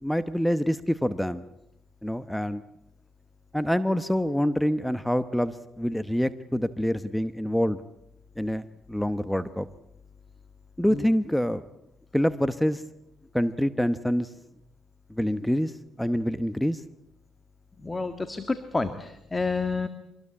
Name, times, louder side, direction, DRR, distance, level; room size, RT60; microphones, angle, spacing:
voice 1, 0.0-1.4 2.0-2.6 3.5-7.8 8.4-9.7 10.8-11.6 12.1-12.8 13.3-14.3 15.1-15.7 16.0-16.8, equal, 5° left, 13 dB, 1.0 m, -26 dB
voice 2, 17.8-19.9, left 3 dB, 20° left, 9 dB, 1.7 m, -29 dB
24.5 x 20.0 x 8.7 m, 0.83 s
cardioid pair, 90°, 0 cm